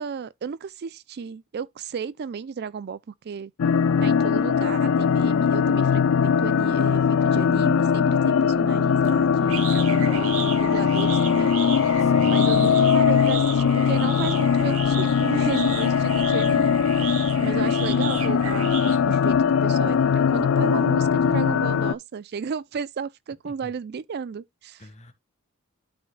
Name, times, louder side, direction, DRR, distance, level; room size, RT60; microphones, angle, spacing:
voice 1, 0.0-3.5 4.0-11.5 12.2-16.8 17.4-24.9, right 6 dB, 50° right, 0.4 m, -33 dB
sound 1, 3.6-21.9, left 6 dB, 65° left, 0.4 m, -21 dB
sound 2, 9.0-19.4, right 7 dB, 75° right, 1.7 m, -35 dB
voice 2, 12.0-12.4 23.4-23.7 24.8-25.1, left 1 dB, 30° left, 1.5 m, -43 dB
12.5 x 4.5 x 2.2 m
head